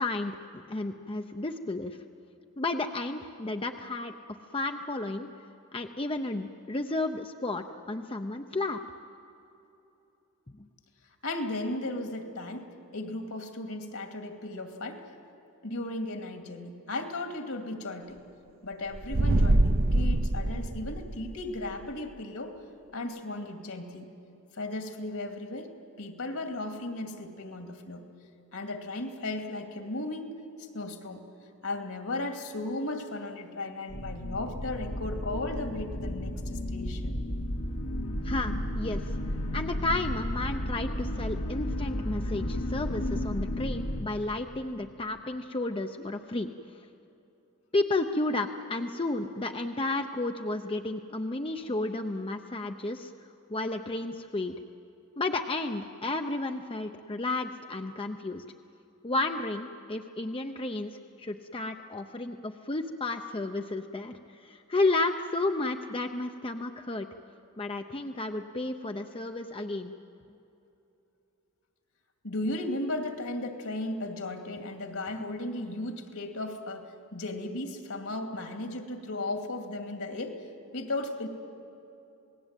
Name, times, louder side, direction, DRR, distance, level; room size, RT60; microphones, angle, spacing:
voice 1, 0.0-2.0 2.6-4.1 4.5-5.3 5.7-8.8 10.6-10.7 38.2-39.0 39.5-46.5 47.7-53.1 53.5-54.6 55.2-58.4 59.0-67.1 67.6-69.9, left 2 dB, 25° left, 5 dB, 0.7 m, -32 dB
voice 2, 11.2-15.0 15.6-18.2 18.6-22.6 22.9-24.1 24.5-25.7 26.0-28.0 28.5-31.2 31.6-37.2 72.2-80.4 80.7-81.3, left 2 dB, 70° left, 5 dB, 2.6 m, -36 dB
sound 1, 18.9-21.4, right 1 dB, 45° right, 0.8 m, -24 dB
sound 2, 33.9-44.0, left 1 dB, 85° left, 2.3 m, -33 dB
27.5 x 19.5 x 9.0 m, 2.9 s
head